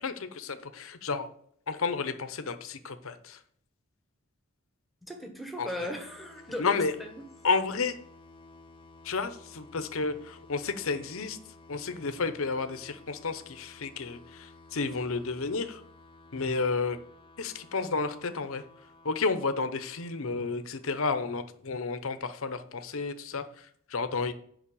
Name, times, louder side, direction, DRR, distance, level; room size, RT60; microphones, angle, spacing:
voice 1, 0.0-1.3 1.7-3.4 5.6-5.9 6.6-6.9 7.4-8.0 9.0-11.4 11.7-15.8 16.3-17.0 17.4-18.6 19.0-24.3, left 4 dB, 65° left, 10 dB, 0.8 m, -31 dB
voice 2, 5.0-7.2, left 1 dB, ahead, 3 dB, 1.3 m, -38 dB
sound 1, 5.9-21.3, left 2 dB, 25° left, 0.8 m, -55 dB
7.3 x 5.6 x 7.0 m, 0.63 s
head